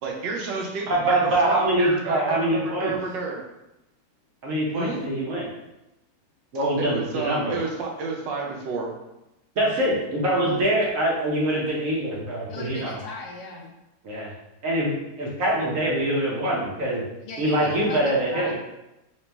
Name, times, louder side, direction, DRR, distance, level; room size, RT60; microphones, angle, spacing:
voice 1, 0.0-3.4 4.7-5.0 6.8-8.9, right 4 dB, 75° right, -1 dB, 1.3 m, -31 dB
voice 2, 0.9-2.9 4.4-5.5 6.5-7.5 9.6-13.0 14.0-14.3 14.6-17.0 17.4-18.5, right 1 dB, 55° right, -4 dB, 1.0 m, -24 dB
voice 3, 12.5-13.7 17.2-18.5, left 3 dB, 75° left, 0 dB, 1.0 m, -38 dB
3.1 x 3.1 x 3.3 m, 0.92 s
omnidirectional pair, 2.0 m